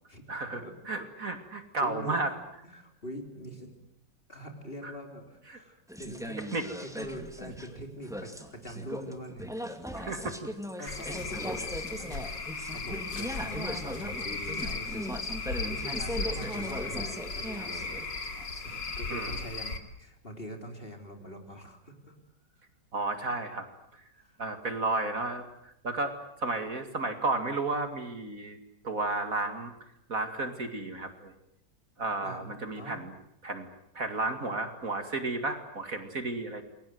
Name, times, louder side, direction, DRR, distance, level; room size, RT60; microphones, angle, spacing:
voice 1, 0.3-2.3 4.8-4.9 5.5-5.6 6.5-6.6 10.0-10.5 10.8-10.9 19.1-19.4 22.9-23.7 24.4-28.6 28.8-29.7 30.1-31.3 32.0-33.1 33.4-33.7 33.9-36.6, right 3 dB, 50° right, 7 dB, 2.6 m, -33 dB
voice 2, 1.8-3.8 4.3-6.4 6.8-9.5 10.8-11.6 12.0-12.3 12.7-18.2 18.6-22.1 24.1-24.4 32.2-33.0, right 1 dB, 30° left, 4 dB, 4.0 m, -43 dB
sound 1, 5.9-18.9, equal, ahead, 2.2 m, -39 dB
Cricket / Frog, 10.9-19.8, left 4 dB, 80° left, 3.1 m, -36 dB
28.5 x 22.5 x 7.9 m, 0.78 s
omnidirectional pair, 1.9 m